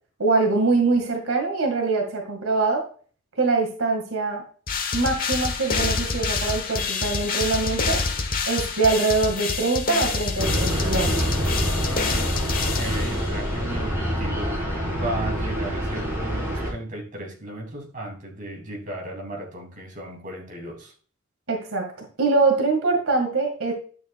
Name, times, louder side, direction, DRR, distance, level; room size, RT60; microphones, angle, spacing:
voice 1, 0.2-2.8 3.4-4.4 4.9-8.0 8.5-11.2 21.5-23.7, right 3 dB, 80° right, 2 dB, 2.0 m, -23 dB
sound 1, 4.7-13.5, left 4 dB, 45° left, 1.2 m, -27 dB
sound 2, 10.4-16.7, equal, 10° right, 4.2 m, -26 dB
voice 2, 12.5-14.6 14.9-20.9, right 1 dB, 40° right, 0 dB, 2.8 m, -34 dB
11.0 x 7.1 x 2.4 m, 0.41 s
head